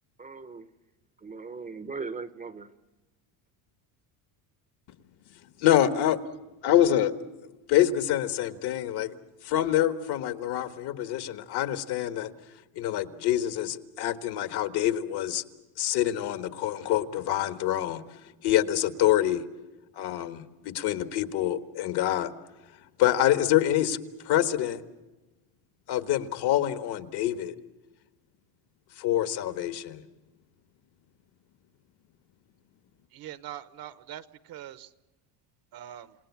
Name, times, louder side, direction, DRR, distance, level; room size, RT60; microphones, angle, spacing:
voice 1, 0.2-0.7 1.2-2.7, right 4 dB, 20° right, 13 dB, 0.8 m, -39 dB
voice 2, 5.6-6.2 6.6-7.1 7.7-9.1 9.4-12.3 12.8-15.4 15.8-18.0 18.4-19.4 20.0-22.3 23.0-24.0 24.3-24.8 25.9-27.5 29.0-30.0, left 12 dB, 55° left, 10 dB, 1.6 m, -26 dB
voice 3, 33.1-34.9 35.7-36.1, right 11 dB, 50° right, 15 dB, 1.1 m, -42 dB
29.5 x 18.0 x 7.3 m, 1.1 s
cardioid pair, 130°, 46 cm